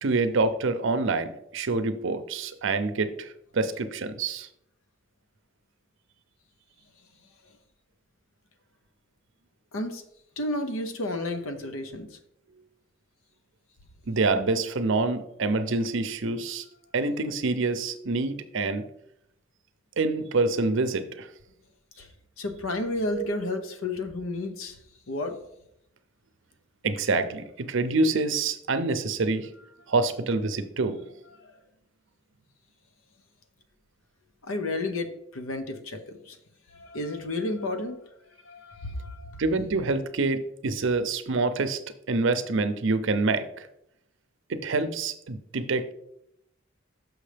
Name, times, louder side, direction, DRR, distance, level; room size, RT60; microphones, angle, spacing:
voice 1, 0.0-4.5 14.1-16.6 16.9-18.8 20.0-21.3 23.1-23.3 26.8-29.5 29.9-31.0 39.4-41.8 42.1-43.7 44.5-45.9, right 3 dB, 65° right, 10 dB, 0.6 m, -26 dB
voice 2, 9.7-10.0 10.4-12.1 22.0-22.1 22.4-24.8 25.1-25.4 31.4-31.5 34.4-36.4 36.7-38.0 38.5-39.4, left 2 dB, 85° left, 7 dB, 0.8 m, -32 dB
6.4 x 6.2 x 3.4 m, 0.77 s
head